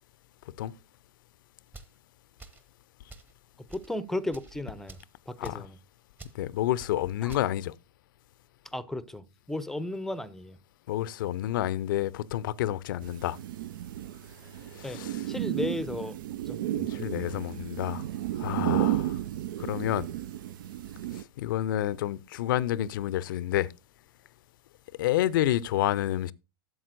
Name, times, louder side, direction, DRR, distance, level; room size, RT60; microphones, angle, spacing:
sound 1, 1.7-2.0 2.4-2.7 3.1-3.3 3.7-3.9 4.3-4.5 4.9-5.1 5.4-5.7 6.2-6.4 6.8-6.9 7.3-7.5, right 3 dB, 15° right, 1.0 m, -48 dB
voice 1, 3.7-5.0 5.3-5.8 7.2-7.3 8.7-10.6 14.8-15.0 15.3-16.2 16.5-16.6, left 1 dB, 5° left, 0.6 m, -34 dB
voice 2, 6.3-7.7 10.9-13.4 14.8-15.3 16.7-18.0 18.4-19.2 19.6-20.1 21.1-23.7 25.0-26.3, left 13 dB, 55° left, 0.6 m, -29 dB
sound 2, 13.0-21.2, right 14 dB, 55° right, 0.4 m, -33 dB
12.5 x 7.4 x 2.6 m
figure-of-eight pair, 100°, 13 cm